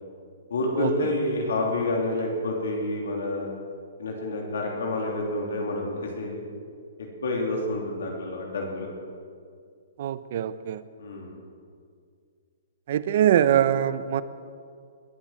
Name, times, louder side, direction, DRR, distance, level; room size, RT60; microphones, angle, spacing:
voice 1, 0.5-3.5 4.0-6.4 7.2-8.9 11.0-11.4, left 2 dB, 80° left, 0 dB, 3.2 m, -28 dB
voice 2, 10.0-10.8 12.9-14.2, right 10 dB, 55° right, 14 dB, 0.7 m, -23 dB
20.5 x 7.2 x 7.6 m, 2.2 s
hypercardioid pair, 145°, 0 cm